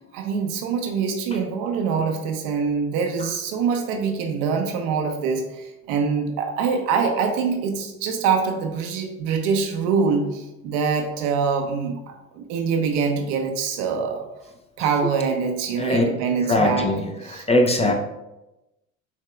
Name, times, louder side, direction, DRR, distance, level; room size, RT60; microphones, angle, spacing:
voice 1, 0.1-12.0 12.3-14.2 14.8-16.9 17.2-17.4 17.8-17.9, right 5 dB, 65° right, 4 dB, 0.8 m, -24 dB
voice 2, 16.5-17.9, left 2 dB, 15° left, 3 dB, 0.6 m, -21 dB
6.6 x 2.8 x 2.3 m, 0.97 s
hypercardioid pair, 70°, 38 cm